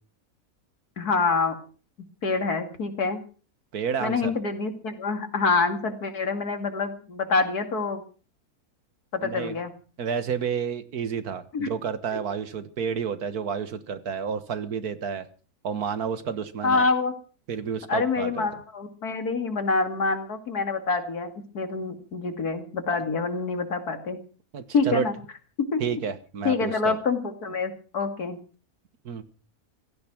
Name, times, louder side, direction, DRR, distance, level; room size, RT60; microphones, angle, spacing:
voice 1, 1.0-1.5 2.2-3.2 4.0-8.0 9.1-9.7 11.5-11.7 16.6-17.1 17.9-21.3 21.5-24.2 24.7-25.1 25.6-25.8 26.4-28.4, left 4 dB, 85° left, 7 dB, 2.8 m, -26 dB
voice 2, 3.7-4.3 9.2-9.6 10.0-15.2 15.6-16.9 17.5-18.5 24.5-25.1 25.8-27.0 29.1-29.2, right 6 dB, 80° right, 12 dB, 1.9 m, -30 dB
16.5 x 14.0 x 6.0 m, 0.39 s
omnidirectional pair, 1.6 m